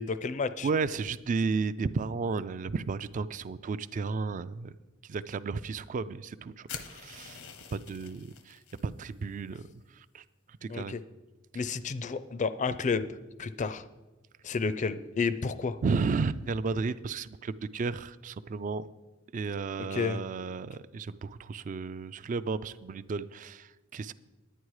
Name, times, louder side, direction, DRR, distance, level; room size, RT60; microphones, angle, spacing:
voice 1, 0.0-0.7 10.7-11.0 11.5-13.1 13.4-13.9 14.4-15.8 19.9-20.2, left 5 dB, 35° left, 13 dB, 0.4 m, -31 dB
voice 2, 0.6-4.7 5.1-7.4 7.7-9.6 10.0-10.2 10.6-11.0 15.8-18.9 19.3-24.1, right 4 dB, 40° right, 15 dB, 0.3 m, -33 dB
sound 1, 6.7-8.9, left 6 dB, 80° left, 0.8 m, -45 dB
10.0 x 9.5 x 4.8 m, 1.2 s
head